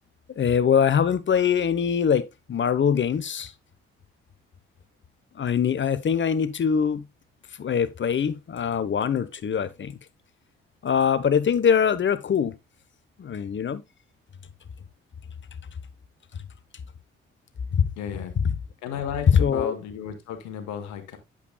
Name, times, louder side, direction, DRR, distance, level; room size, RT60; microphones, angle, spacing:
voice 1, 0.4-3.5 5.4-7.0 7.6-9.9 10.8-12.5 13.2-13.8 17.7-17.9 19.3-19.8, left 7 dB, 40° left, 0.9 m, -23 dB
voice 2, 18.0-18.3 18.8-21.2, left 8 dB, 70° left, 1.3 m, -34 dB
8.3 x 7.2 x 2.2 m
hypercardioid pair, 45°, 29 cm